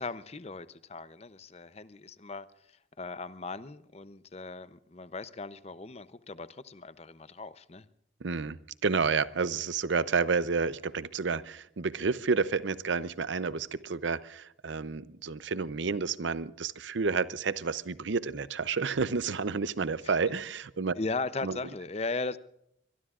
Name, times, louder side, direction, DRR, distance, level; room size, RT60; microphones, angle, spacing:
voice 1, 0.0-2.5 3.0-7.9 20.0-20.3 21.0-22.4, left 3 dB, 35° left, 0.6 m, -38 dB
voice 2, 8.2-20.9 21.4-21.6, right 4 dB, 75° right, 0.6 m, -30 dB
23.5 x 22.5 x 2.5 m
head